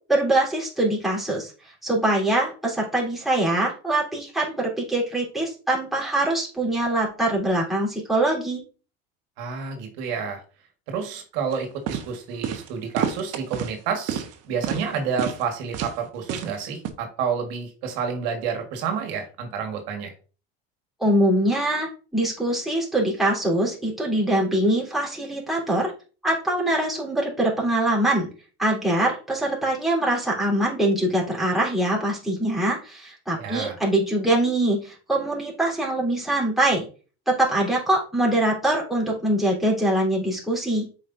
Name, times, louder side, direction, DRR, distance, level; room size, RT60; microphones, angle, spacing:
voice 1, 0.1-8.6 21.0-25.9 26.2-28.3 28.6-36.9 37.3-40.9, right 1 dB, ahead, -6 dB, 3.5 m, -23 dB
voice 2, 9.4-10.4 10.9-20.1 33.4-33.8, right 6 dB, 80° right, 4 dB, 1.7 m, -29 dB
sound 1, 11.5-11.6 11.9-12.1 12.4-12.7 13.0-13.7 14.1-14.3 14.6-14.8 15.2-15.4 15.7-16.0 16.3-16.5 16.8-16.9, right 9 dB, 55° right, 1.1 m, -28 dB
7.4 x 5.0 x 2.6 m, 0.37 s
supercardioid pair, 110°, 30 cm